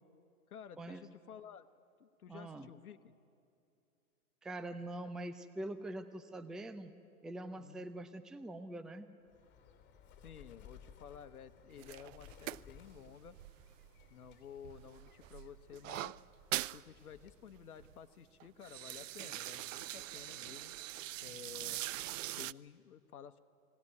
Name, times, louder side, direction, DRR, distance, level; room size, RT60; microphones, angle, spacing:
voice 1, 0.5-1.7 2.0-3.1 7.6-7.9 10.2-13.4 14.1-16.1 16.7-20.7 21.2-21.8 22.4-23.4, left 8 dB, 80° left, 9 dB, 1.0 m, -53 dB
voice 2, 2.3-2.7 4.4-6.9 7.2-9.1, right 1 dB, ahead, 10 dB, 0.5 m, -44 dB
Bird, 9.3-17.5, left 7 dB, 25° left, 3.0 m, -60 dB
sound 1, 11.8-14.3 14.6-16.8 17.2-17.3 17.6-18.0 18.4-22.5, right 15 dB, 65° right, 0.5 m, -43 dB
21.5 x 17.0 x 9.8 m, 2.6 s
hypercardioid pair, 110°, 43 cm